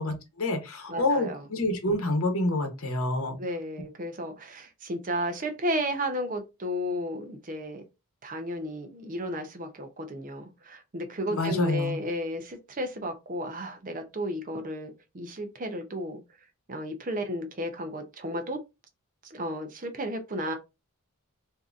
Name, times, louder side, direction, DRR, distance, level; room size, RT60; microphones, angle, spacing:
voice 1, 0.0-3.4 11.3-12.0, left 2 dB, 70° left, 0.9 m, -27 dB
voice 2, 0.9-1.4 3.4-7.8 8.2-16.2 16.7-18.6 19.2-20.5, equal, 35° right, 0.6 m, -33 dB
3.6 x 2.7 x 2.5 m
head